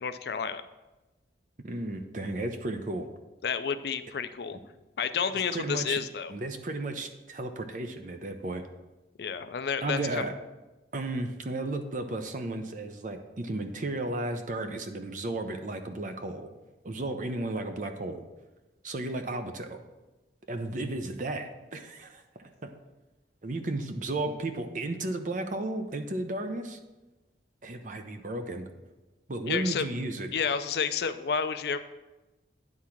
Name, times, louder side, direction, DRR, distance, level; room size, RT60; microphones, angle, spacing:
voice 1, 0.0-0.6 3.4-4.6 5.0-6.3 9.2-10.2 29.5-29.9 30.3-31.8, left 6 dB, 65° left, 11 dB, 0.4 m, -30 dB
voice 2, 1.6-3.1 5.3-6.0 6.3-8.6 9.8-10.3 10.9-16.5 16.8-18.2 18.8-19.8 20.5-22.7 23.4-26.8 27.6-28.7 29.3-30.3, right 2 dB, 45° right, 6 dB, 0.7 m, -34 dB
9.7 x 3.7 x 5.8 m, 1.1 s
head